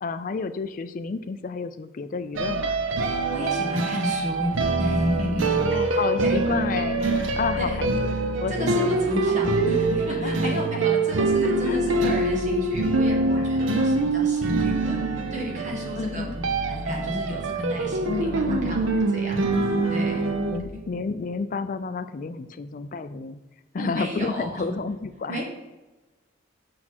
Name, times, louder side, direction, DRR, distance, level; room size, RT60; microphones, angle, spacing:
voice 1, 0.0-2.8 5.5-7.9 8.4-9.5 10.1-10.5 11.6-12.2 13.4-13.9 16.0-16.4 18.1-18.9 19.7-20.2 20.5-23.4 23.7-25.4, left 4 dB, 45° left, 11 dB, 0.4 m, -31 dB
sound 1, 2.3-20.6, right 2 dB, 85° right, 0.7 m, -24 dB
voice 2, 3.3-4.5 4.8-5.6 5.9-6.5 7.6-7.8 8.5-16.4 16.7-18.8 19.1-19.5 19.9-20.3 20.7-20.8 23.8-24.7 25.3-25.4, equal, 40° right, -2 dB, 1.6 m, -32 dB
6.4 x 5.8 x 4.3 m, 1.1 s
head